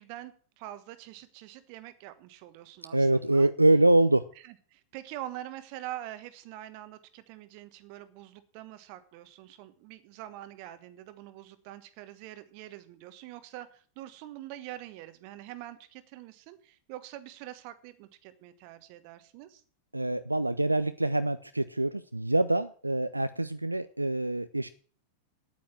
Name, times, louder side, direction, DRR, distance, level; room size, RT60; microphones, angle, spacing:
voice 1, 0.0-3.5 4.4-19.6, right 14 dB, 45° right, 13 dB, 1.3 m, -45 dB
voice 2, 2.9-4.2 19.9-24.7, right 2 dB, 85° right, 13 dB, 0.5 m, -25 dB
9.2 x 8.8 x 7.5 m, 0.44 s
figure-of-eight pair, 90°, 0 cm